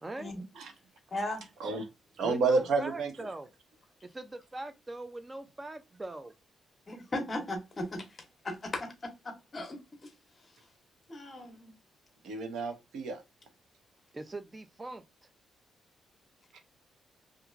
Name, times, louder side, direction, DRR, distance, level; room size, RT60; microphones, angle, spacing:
voice 1, 0.0-0.3 2.2-3.5 4.0-6.3 14.1-15.0, right 2 dB, 15° right, 0.3 m, -41 dB
voice 2, 1.1-1.5 6.9-8.1 8.4-10.1 11.1-11.7, left 1 dB, 25° left, 0.7 m, -37 dB
voice 3, 2.2-3.1 12.2-13.2 16.5-16.6, right 4 dB, 65° right, 0.7 m, -30 dB
2.9 x 2.4 x 2.4 m
cardioid pair, 170°, 0 cm